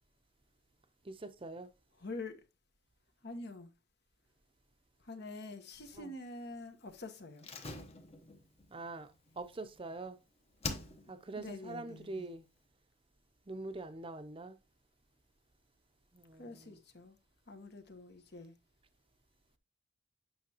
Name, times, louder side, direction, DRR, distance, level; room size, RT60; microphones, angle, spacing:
voice 1, 1.0-1.7 6.0-6.2 8.7-10.2 11.1-12.5 13.5-14.6 16.1-16.8, right 2 dB, 25° right, 0.6 m, -44 dB
voice 2, 2.0-2.4 3.2-3.7 5.0-7.5 11.4-12.3 16.4-17.2 17.5-18.6, left 2 dB, 55° left, 1.2 m, -46 dB
Slam, 7.4-10.1 10.6-11.4 11.6-11.7, left 3 dB, 30° left, 1.0 m, -44 dB
8.5 x 5.7 x 2.9 m
head